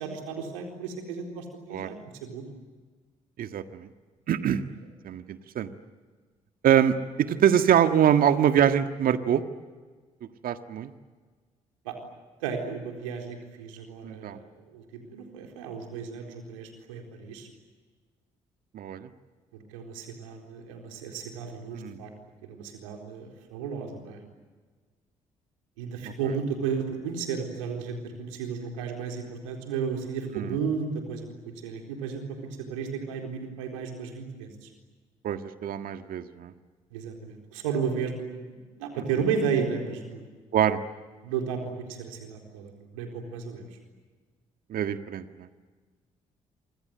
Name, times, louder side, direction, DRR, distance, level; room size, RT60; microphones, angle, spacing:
voice 1, 0.0-1.9 2.2-2.5 7.3-7.4 11.8-12.0 12.4-17.5 19.5-22.1 22.4-24.2 25.8-34.7 36.9-40.2 41.2-43.7, right 6 dB, 80° right, 3 dB, 4.1 m, -33 dB
voice 2, 3.4-3.9 4.3-4.7 5.0-5.7 6.6-9.4 10.4-10.9 14.0-14.4 18.7-19.1 21.7-22.0 26.0-26.1 30.3-30.6 35.2-36.5 39.2-39.3 40.5-40.8 44.7-45.5, right 9 dB, 60° right, 9 dB, 1.7 m, -24 dB
29.0 x 26.0 x 7.9 m, 1.4 s
hypercardioid pair, 45°, 16 cm